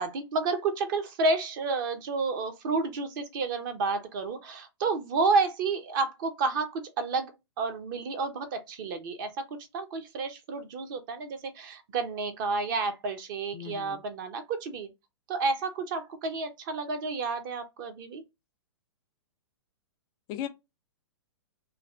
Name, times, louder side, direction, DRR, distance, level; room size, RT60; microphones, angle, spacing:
voice 1, 0.0-7.3 7.6-9.4 9.7-14.9 15.3-18.2, right 4 dB, 45° right, 0.8 m, -30 dB
voice 2, 13.5-14.0 20.3-20.5, left 10 dB, 25° left, 0.4 m, -36 dB
2.5 x 2.4 x 3.2 m
figure-of-eight pair, 115°, 15 cm